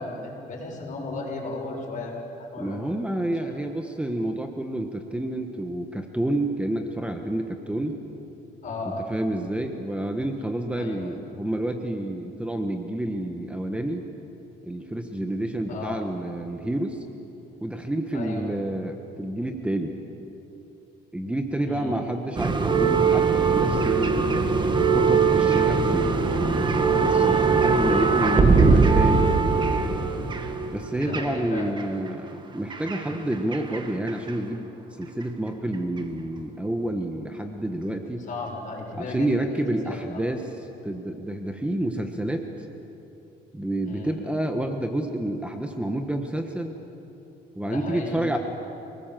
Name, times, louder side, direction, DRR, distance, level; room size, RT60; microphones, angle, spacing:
voice 1, 0.0-2.2 2.5-2.9 3.4-3.5 8.6-9.0 10.8-11.2 15.7-16.0 18.1-18.5 21.6-22.1 28.3-28.9 31.0-31.7 33.1-33.3 38.1-40.2 43.8-44.2 47.6-48.4, left 3 dB, 50° left, 0 dB, 6.4 m, -35 dB
voice 2, 2.6-8.0 9.1-14.1 14.6-17.0 17.6-20.0 21.1-24.5 24.9-29.8 30.7-34.7 35.0-38.3 38.9-42.7 43.5-46.8 47.5-48.4, right 1 dB, 5° right, 4 dB, 1.4 m, -29 dB
sound 1, 22.4-31.8 32.7-33.8 34.1-34.3 35.2-35.3, right 4 dB, 25° right, 1.8 m, -21 dB
28.0 x 20.0 x 7.7 m, 3.0 s
cardioid pair, 110°, 17 cm